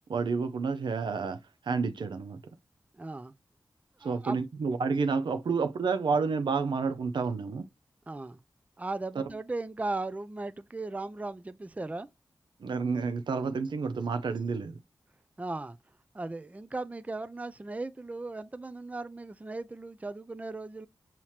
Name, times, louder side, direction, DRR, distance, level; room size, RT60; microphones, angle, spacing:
voice 1, 0.1-1.4 1.7-2.4 4.0-7.6 12.6-14.8, right 5 dB, 80° right, 0.5 m, -29 dB
voice 2, 2.9-3.3 4.0-4.4 8.1-8.4 8.8-12.1 15.4-15.8 16.1-20.9, right 2 dB, 20° right, 0.4 m, -37 dB
5.6 x 2.9 x 3.0 m
cardioid pair, 45°, 8 cm